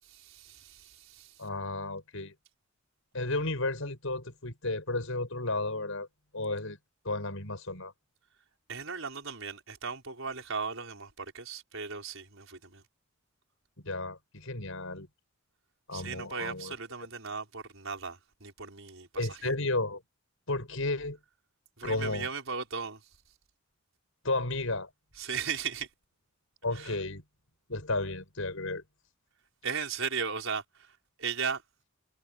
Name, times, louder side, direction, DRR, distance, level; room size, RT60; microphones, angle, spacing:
voice 1, 0.0-1.4 8.7-12.8 15.9-19.5 21.8-23.1 25.1-25.9 26.7-27.0 29.6-31.6, right 5 dB, 65° right, 5.8 m, -37 dB
voice 2, 1.4-2.3 3.1-6.1 6.3-6.8 7.0-7.9 13.8-15.1 15.9-16.7 19.2-20.0 20.5-21.2 21.8-22.3 24.2-24.9 26.6-27.2 27.7-28.8, left 2 dB, 70° left, 6.2 m, -33 dB
head